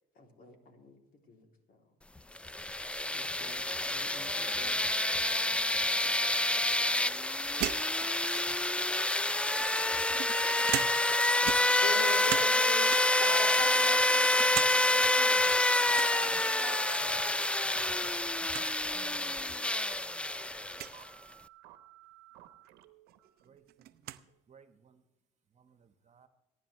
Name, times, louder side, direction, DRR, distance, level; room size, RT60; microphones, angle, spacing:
voice 1, 0.1-2.0 3.1-5.0 5.7-6.2, left 2 dB, 55° left, 3 dB, 3.2 m, -55 dB
sound 1, 2.4-21.0, left 1 dB, 5° left, 0.4 m, -28 dB
sound 2, 7.6-8.8 9.6-11.2 11.4-12.6 12.9-13.3 13.8-14.7 15.1-15.2 15.9-16.2 17.6-18.0 18.2-18.3 18.5-18.7 19.5-19.6 20.7-21.0 22.6-22.7 23.1-24.2, right 14 dB, 60° right, 0.7 m, -38 dB
voice 2, 11.5-15.5 15.8-17.3, left 3 dB, 85° left, 3 dB, 4.0 m, -41 dB
sound 3, 15.5-24.4, right 13 dB, 85° right, 1.1 m, -55 dB
voice 3, 23.4-24.2 24.5-25.0 25.5-26.3, right 6 dB, 40° right, 10 dB, 1.4 m, -62 dB
25.5 x 10.0 x 3.3 m, 1.0 s
supercardioid pair, 75°, 18 cm